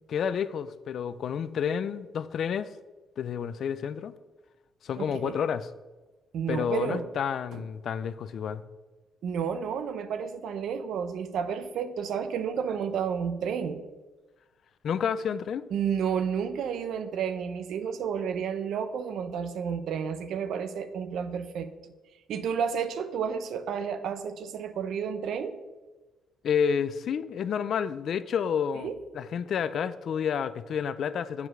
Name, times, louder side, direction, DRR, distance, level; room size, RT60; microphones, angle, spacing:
voice 1, 0.1-2.7 3.2-4.1 4.8-5.7 6.5-8.6 14.8-15.7 26.4-31.5, left 7 dB, 60° left, 0.4 m, -30 dB
voice 2, 5.0-5.4 6.3-7.1 7.5-7.6 9.2-13.8 15.7-21.7 22.3-25.5 28.8-29.0, right 7 dB, 75° right, 0.7 m, -31 dB
7.7 x 4.8 x 6.6 m
cardioid pair, 90°, 0 cm